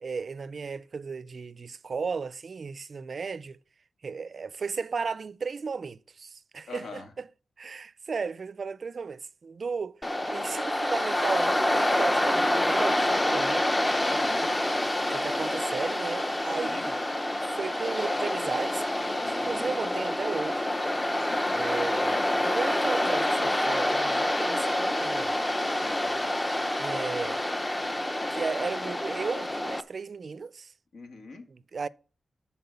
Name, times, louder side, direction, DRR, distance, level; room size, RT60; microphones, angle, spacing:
voice 1, 0.0-3.6 4.0-7.3 7.6-10.0 10.3-13.7 15.1-17.0 17.4-18.9 19.3-20.6 21.5-25.4 26.8-27.4 28.3-30.7 31.5-31.9, right 5 dB, 50° right, 0.4 m, -35 dB
voice 2, 6.7-7.1 14.1-14.5 16.4-16.9 19.2-19.8 21.2-21.6 25.7-26.2 30.9-31.4, left 3 dB, 85° left, 1.7 m, -44 dB
Waves surf, 10.0-29.8, left 1 dB, 15° left, 0.6 m, -27 dB
10.5 x 4.3 x 6.9 m
wide cardioid pair, 115°, 0 cm